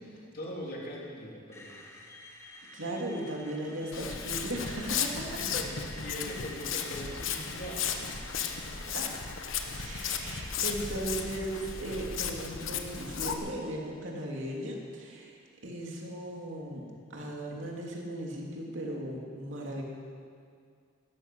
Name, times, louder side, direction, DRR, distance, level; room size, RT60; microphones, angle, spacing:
voice 1, 0.2-1.8 5.3-8.9, equal, 50° left, -2 dB, 3.2 m, -41 dB
Screech, 1.5-15.5, left 1 dB, 15° left, 1.6 m, -51 dB
voice 2, 2.7-5.4 8.8-9.1 9.7-19.8, right 1 dB, 70° right, -1 dB, 2.8 m, -37 dB
Walk footsteps, 3.9-13.3, left 7 dB, 75° left, 1.2 m, -35 dB
16.5 x 14.0 x 6.2 m, 2.2 s
head